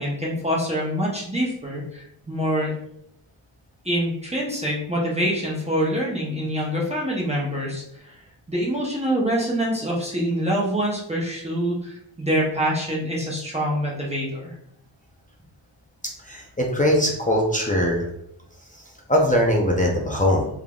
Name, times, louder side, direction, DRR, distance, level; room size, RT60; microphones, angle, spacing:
voice 1, 0.0-2.8 3.8-8.2 8.5-14.5, equal, 15° right, -4 dB, 0.8 m, -25 dB
voice 2, 16.2-18.0 19.1-20.5, equal, 15° left, -1 dB, 0.5 m, -21 dB
3.5 x 3.5 x 2.3 m, 0.74 s
wide cardioid pair, 125°, 47 cm